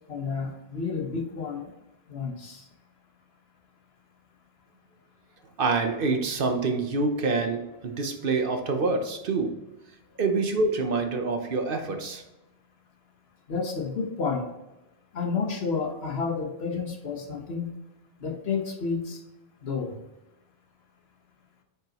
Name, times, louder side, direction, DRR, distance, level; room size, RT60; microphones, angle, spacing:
voice 1, 0.1-1.7 2.1-2.7 13.5-14.5 15.1-17.8 18.2-19.2 19.6-20.0, left 5 dB, 85° left, 4 dB, 1.4 m, -30 dB
voice 2, 5.6-9.7 10.2-12.2, right 3 dB, 60° right, 5 dB, 1.1 m, -26 dB
8.1 x 5.1 x 2.9 m, 0.97 s
omnidirectional pair, 1.0 m